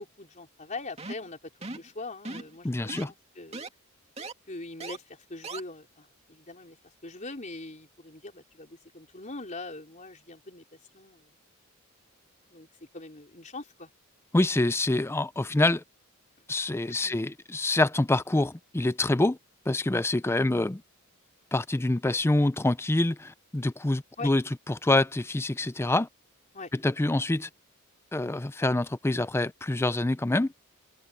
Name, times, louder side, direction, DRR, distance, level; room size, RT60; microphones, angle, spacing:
voice 1, 0.0-3.6 4.5-6.8 7.0-10.6 10.9-11.3 12.5-12.7 12.9-13.9 17.0-17.2 24.2-24.3 26.5-26.7, left 2 dB, 35° left, 4.4 m, -42 dB
sound 1, 1.0-1.3 1.6-1.9 2.2-2.6 2.9-3.1 3.5-3.7 4.2-4.3 4.8-5.0 5.4-5.6, right 3 dB, 30° right, 2.4 m, -38 dB
voice 2, 2.6-3.1 14.3-15.8 16.5-19.4 19.7-20.8 21.5-26.1 26.7-27.5 28.1-30.5, left 2 dB, 10° left, 0.4 m, -26 dB
head